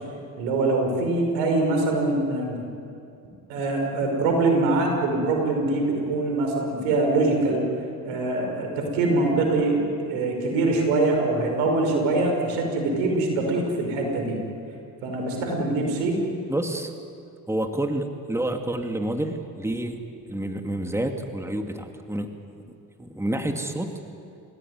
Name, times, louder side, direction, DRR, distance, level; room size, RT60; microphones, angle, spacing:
voice 1, 0.4-2.6 3.5-7.7 8.0-14.4 15.0-16.2, right 2 dB, 80° right, 2 dB, 5.8 m, -23 dB
voice 2, 16.5-16.9 17.5-20.0 20.3-22.3 23.0-24.0, right 1 dB, 5° right, 5 dB, 2.4 m, -28 dB
30.0 x 16.5 x 9.6 m, 2.6 s
hypercardioid pair, 55°, 45 cm